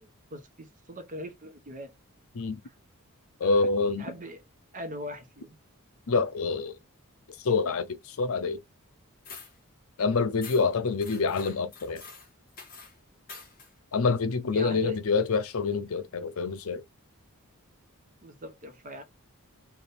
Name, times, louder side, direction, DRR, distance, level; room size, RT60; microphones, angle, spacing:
voice 1, 0.0-1.9 2.6-2.7 3.4-3.7 4.0-4.4 4.7-5.6 14.5-15.0 18.2-19.0, equal, 35° right, 0.9 m, -41 dB
voice 2, 3.4-4.1 6.1-6.8 7.4-8.6 10.0-12.0 13.9-16.8, left 4 dB, 65° left, 0.6 m, -27 dB
sound 1, 9.3-9.6 10.4-10.7 11.0-13.0 13.3-13.7, left 4 dB, 40° left, 1.4 m, -46 dB
3.4 x 2.5 x 4.1 m
head